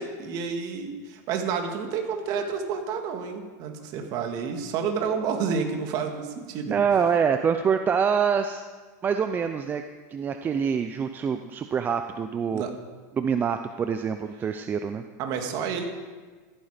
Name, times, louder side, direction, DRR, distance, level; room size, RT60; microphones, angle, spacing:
voice 1, 0.0-6.8 12.5-12.7 15.2-15.9, right 6 dB, 45° right, 4 dB, 2.3 m, -30 dB
voice 2, 6.7-8.6 9.0-9.8 10.1-12.6 13.1-15.0, right 7 dB, 20° right, 8 dB, 0.6 m, -25 dB
15.0 x 13.5 x 5.1 m, 1.4 s
supercardioid pair, 140°, 9 cm